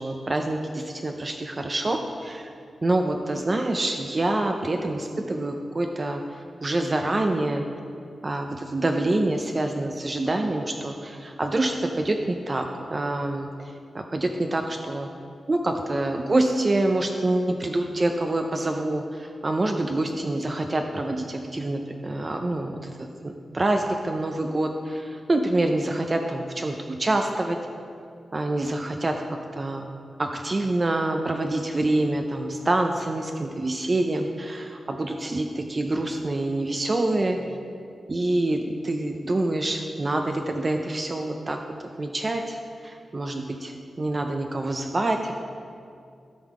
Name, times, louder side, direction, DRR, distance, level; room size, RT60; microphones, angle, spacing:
voice 1, 0.0-2.5 2.8-7.6 8.2-15.1 15.5-27.6 28.3-29.2 29.5-29.9 30.2-37.4 38.1-41.6 42.0-45.3, right 2 dB, 30° right, 4 dB, 0.5 m, -26 dB
12.5 x 5.5 x 4.8 m, 2.4 s
wide cardioid pair, 115°, 0 cm